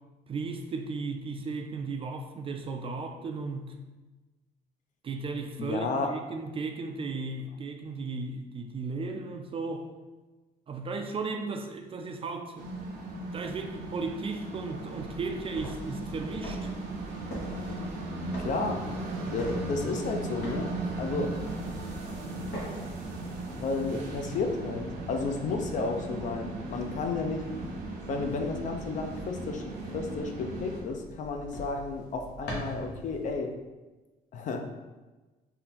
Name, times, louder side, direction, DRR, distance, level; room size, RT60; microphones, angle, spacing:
voice 1, 0.3-3.7 5.0-9.9 10.7-12.7 13.3-16.7, right 3 dB, 35° right, 5 dB, 0.4 m, -35 dB
voice 2, 5.6-6.1 18.4-18.8 19.3-20.7 21.0-21.3 23.5-27.4 28.1-29.6 29.9-33.5 34.3-34.6, left 3 dB, 50° left, 4 dB, 0.5 m, -32 dB
sound 1, 12.6-30.8, right 2 dB, 85° right, 0.8 m, -37 dB
sound 2, 14.9-33.4, equal, 75° left, 1.1 m, -44 dB
3.7 x 2.1 x 4.2 m, 1.2 s
cardioid pair, 110°, 17 cm